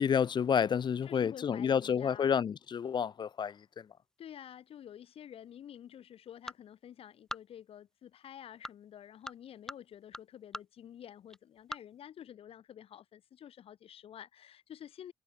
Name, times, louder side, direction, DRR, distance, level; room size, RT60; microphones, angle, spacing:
voice 1, 0.0-3.9, left 7 dB, 50° left, 0.5 m, -30 dB
voice 2, 1.1-2.3 4.2-15.1, left 10 dB, 75° left, 3.4 m, -50 dB
sound 1, 1.6-12.0, left 1 dB, 5° left, 2.2 m, -51 dB
supercardioid pair, 55°, 10 cm